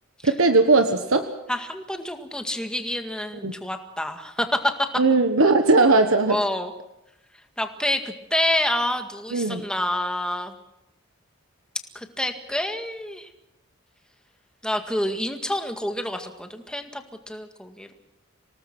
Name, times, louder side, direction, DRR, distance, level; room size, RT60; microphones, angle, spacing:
voice 1, 0.2-1.3 3.4-3.5 5.0-6.4 9.3-9.6, right 3 dB, 80° right, 7 dB, 1.3 m, -18 dB
voice 2, 1.5-4.9 6.3-6.7 7.6-10.5 12.0-13.3 14.6-17.9, left 1 dB, 5° left, 5 dB, 1.9 m, -28 dB
26.0 x 18.5 x 6.1 m, 0.87 s
head